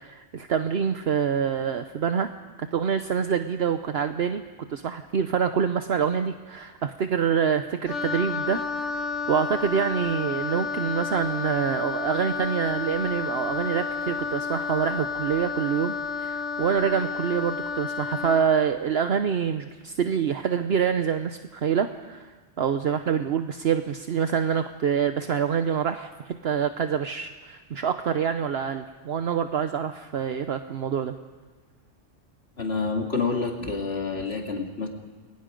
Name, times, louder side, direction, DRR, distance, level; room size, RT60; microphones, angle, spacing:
voice 1, 0.0-2.3 2.6-4.4 4.7-15.9 16.2-22.3 22.6-31.1, right 7 dB, 65° right, 8 dB, 1.1 m, -26 dB
Wind instrument woodwind instrument, 7.9-18.5, left 5 dB, 80° left, 1.7 m, -31 dB
voice 2, 32.6-34.9, left 4 dB, 60° left, 1 dB, 2.6 m, -28 dB
29.5 x 21.5 x 5.2 m, 1.4 s
omnidirectional pair, 1.2 m